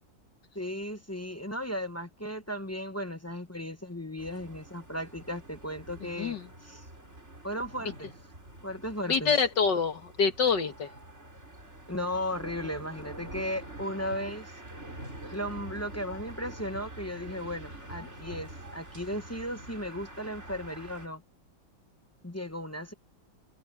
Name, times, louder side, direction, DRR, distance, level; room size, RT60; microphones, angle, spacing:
voice 1, 0.5-6.9 7.4-8.1 8.6-9.3 11.9-14.5 15.3-21.2 22.2-22.9, equal, 15° left, 0.5 m, -36 dB
sound 1, 4.2-21.1, right 1 dB, 35° right, 5.4 m, -46 dB
voice 2, 6.2-6.5 9.1-10.9, left 5 dB, 60° left, 2.3 m, -26 dB
omnidirectional pair, 2.1 m